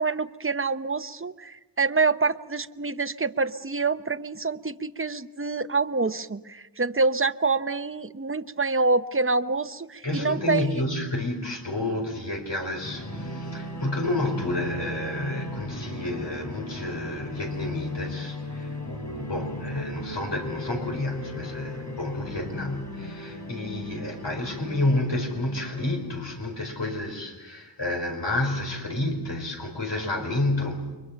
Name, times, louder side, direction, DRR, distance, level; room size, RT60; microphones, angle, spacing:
voice 1, 0.0-10.7, right 4 dB, 30° right, 12 dB, 0.8 m, -26 dB
voice 2, 10.0-31.0, left 2 dB, 90° left, 2 dB, 4.7 m, -30 dB
sound 1, 12.8-26.1, left 1 dB, 45° left, 6.3 m, -37 dB
30.0 x 24.0 x 5.8 m, 1.1 s
wide cardioid pair, 50°, 42 cm